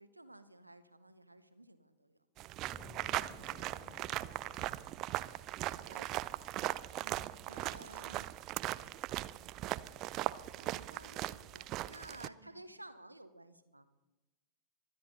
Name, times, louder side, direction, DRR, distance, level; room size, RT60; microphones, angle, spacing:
voice 1, 0.0-2.2 5.6-6.8 7.5-8.3 10.6-13.9, right 1 dB, 85° right, 12 dB, 0.8 m, -55 dB
sound 1, 2.4-12.3, right 16 dB, 35° right, 0.4 m, -39 dB
sound 2, 2.6-10.6, right 1 dB, 5° right, 3.1 m, -58 dB
voice 2, 3.1-4.4 6.9-7.4 12.4-12.6, right 1 dB, 85° left, -1 dB, 4.1 m, -59 dB
23.5 x 10.5 x 4.0 m, 1.1 s
figure-of-eight pair, 90°, 0 cm